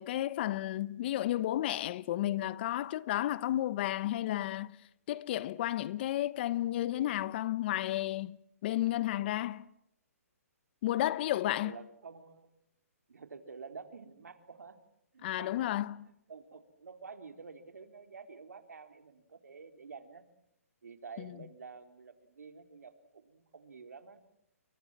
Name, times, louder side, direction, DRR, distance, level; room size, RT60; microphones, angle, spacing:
voice 1, 0.0-4.7 5.1-9.6 10.8-11.7 15.2-16.0, left 14 dB, 40° left, 1.0 m, -32 dB
voice 2, 11.4-12.5 13.1-14.8 15.1-15.7 16.0-20.3 20.8-24.2, right 5 dB, 85° right, 3.7 m, -50 dB
29.5 x 23.5 x 7.4 m
hypercardioid pair, 150°, 8 cm